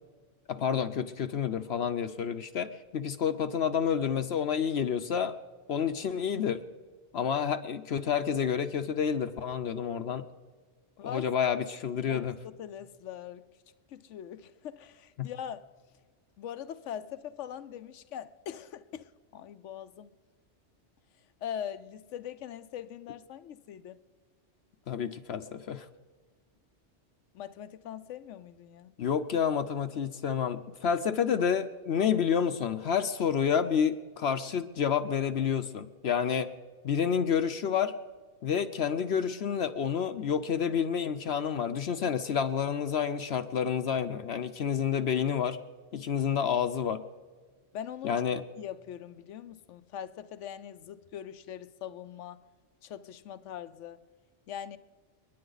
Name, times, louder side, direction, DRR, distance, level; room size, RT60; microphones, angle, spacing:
voice 1, 0.5-5.3 5.7-6.6 7.1-10.2 11.0-12.3 15.2-15.3 24.9-25.9 29.0-36.5 36.8-37.9 38.4-45.6 45.9-47.0 48.0-48.4, left 7 dB, 65° left, 0.9 m, -29 dB
voice 2, 12.1-13.5 13.9-15.7 16.4-20.2 21.4-24.0 27.3-28.9 47.7-48.1 48.6-52.4 52.8-54.0 54.5-54.8, left 9 dB, 85° left, 1.0 m, -42 dB
30.0 x 10.5 x 4.0 m
omnidirectional pair, 1.2 m